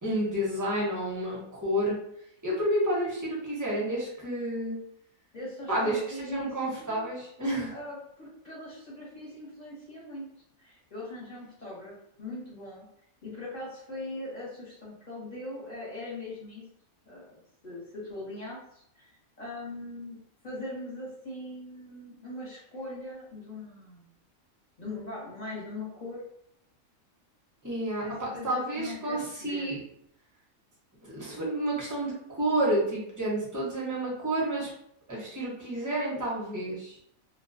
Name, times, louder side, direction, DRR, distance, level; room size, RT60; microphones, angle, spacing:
voice 1, 0.0-2.0 2.4-4.8 5.7-7.7 27.6-29.8 31.0-34.7 35.1-37.0, right 1 dB, 20° right, -5 dB, 0.6 m, -30 dB
voice 2, 5.3-6.5 6.8-7.0 7.7-10.3 10.6-12.8 13.2-16.6 17.1-19.1 19.4-20.2 20.4-24.1 24.8-26.2 28.0-29.7, left 2 dB, 35° left, -7 dB, 0.9 m, -41 dB
2.3 x 2.2 x 2.5 m, 0.72 s
omnidirectional pair, 1.5 m